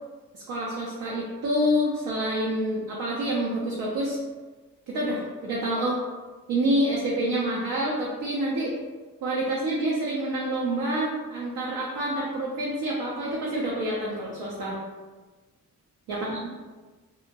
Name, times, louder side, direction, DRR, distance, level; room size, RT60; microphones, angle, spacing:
voice 1, 0.3-4.2 4.9-6.0 6.5-8.7 9.2-14.8 16.1-16.4, right 1 dB, 80° right, -4 dB, 0.6 m, -27 dB
2.6 x 2.0 x 2.7 m, 1.3 s
cardioid pair, 65°, 36 cm